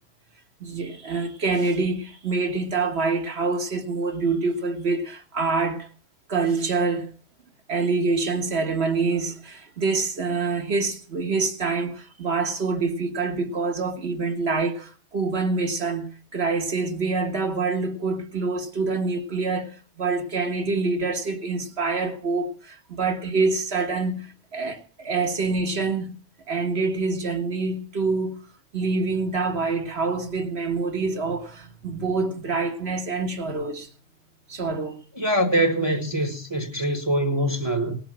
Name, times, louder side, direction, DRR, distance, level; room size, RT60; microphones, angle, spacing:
voice 1, 0.6-5.9 6.3-7.1 7.7-19.7 20.0-26.2 26.5-28.4 28.7-33.9 34.5-35.0, right 4 dB, 55° right, 1.6 m, -26 dB
voice 2, 35.1-38.0, right 1 dB, 20° right, 1.3 m, -23 dB
18.5 x 6.9 x 6.1 m
omnidirectional pair, 1.3 m